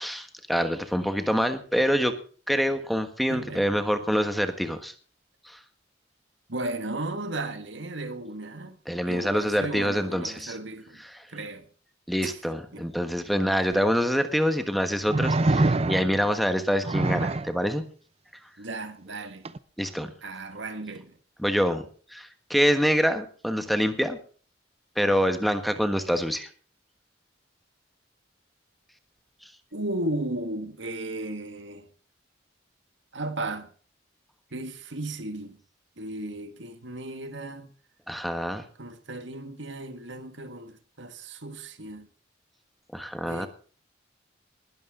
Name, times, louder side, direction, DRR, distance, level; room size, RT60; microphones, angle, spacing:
voice 1, 0.0-2.1 2.5-4.9 5.5-5.6 8.9-10.5 11.1-11.2 12.1-17.8 19.8-20.1 21.4-21.9 22.1-24.2 25.0-26.5 38.1-38.6 42.9-43.5, equal, ahead, 1.3 m, -26 dB
voice 2, 3.3-3.7 6.5-8.8 9.0-11.0 11.3-11.7 12.2-12.4 12.7-12.9 18.6-19.5 20.2-21.2 29.7-31.9 33.1-33.7 34.5-35.6 36.0-37.7 38.8-42.1 43.2-43.5, right 2 dB, 75° right, 1.9 m, -35 dB
sound 1, 13.7-13.8 15.1-16.3 16.8-17.5 19.4-19.6, right 2 dB, 30° right, 0.6 m, -24 dB
20.5 x 12.0 x 3.8 m
head